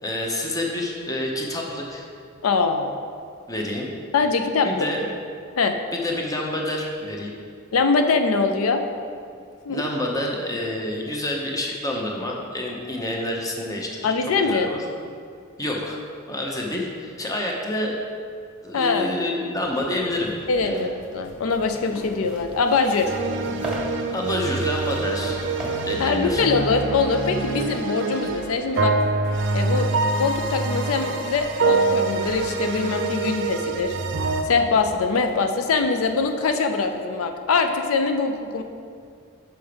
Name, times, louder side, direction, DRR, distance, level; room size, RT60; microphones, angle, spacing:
voice 1, 0.0-2.1 3.5-3.9 4.6-5.1 5.9-7.3 9.7-14.1 14.4-14.8 15.6-16.0 16.3-18.0 18.6-20.3 20.6-20.9 24.1-25.4 25.9-26.4, left 1 dB, 15° left, -1 dB, 0.8 m, -28 dB
voice 2, 2.4-3.0 4.1-4.9 5.6-5.8 7.7-8.8 9.7-9.8 14.0-14.7 18.7-19.1 20.5-23.1 26.0-28.9 29.5-29.9 30.2-33.9 34.4-38.6, left 4 dB, 90° left, 7 dB, 0.4 m, -23 dB
sound 1, 19.6-36.9, left 1 dB, 60° left, 1.0 m, -44 dB
sound 2, 21.3-27.4, right 1 dB, 5° right, 1.2 m, -37 dB
sound 3, 23.0-34.4, right 3 dB, 60° right, 0.5 m, -25 dB
5.8 x 5.4 x 5.1 m, 2.3 s
head